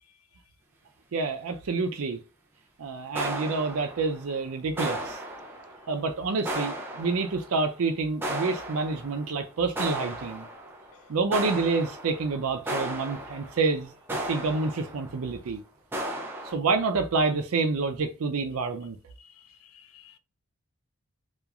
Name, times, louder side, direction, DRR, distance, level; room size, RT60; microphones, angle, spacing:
voice 1, 1.1-2.2 2.8-5.2 5.9-10.5 11.1-15.6 16.4-19.0, right 4 dB, 80° right, 0.5 m, -28 dB
sound 1, 3.2-4.4 4.8-6.0 6.5-7.6 8.2-9.4 9.8-10.9 11.3-15.3 15.9-16.6, right 1 dB, 10° right, 0.3 m, -35 dB
voice 2, 19.2-20.2, left 9 dB, 85° left, 0.3 m, -55 dB
2.9 x 2.4 x 2.4 m
head